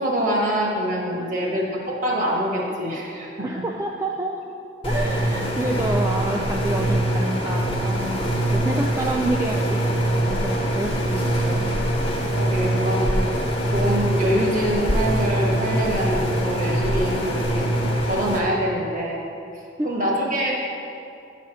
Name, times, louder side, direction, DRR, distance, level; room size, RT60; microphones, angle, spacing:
voice 1, 0.0-3.5 12.3-13.2 13.7-17.7 18.1-19.2 19.8-20.5, equal, 40° right, -2 dB, 1.5 m, -25 dB
voice 2, 1.1-1.5 3.4-4.4 4.8-11.6 19.8-20.1, right 2 dB, 15° right, -1 dB, 0.3 m, -29 dB
sound 1, 4.8-18.4, right 1 dB, 30° left, 1.1 m, -23 dB
9.7 x 4.2 x 6.0 m, 2.6 s
head